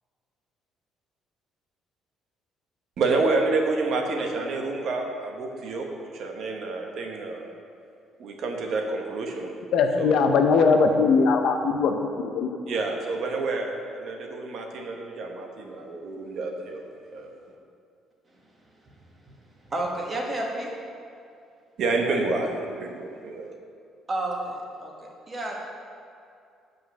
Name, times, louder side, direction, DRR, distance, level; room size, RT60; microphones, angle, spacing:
voice 1, 3.0-5.9 6.1-7.5 8.2-9.5 10.0-10.4 12.7-16.9 17.1-17.3 21.8-23.5, right 3 dB, 50° right, 2 dB, 1.0 m, -28 dB
voice 2, 9.7-12.5, left 4 dB, 60° left, 5 dB, 0.6 m, -20 dB
voice 3, 19.7-20.7 24.1-25.7, right 1 dB, 20° right, -1 dB, 1.1 m, -31 dB
8.2 x 5.2 x 6.4 m, 2.5 s
cardioid pair, 180°, 0 cm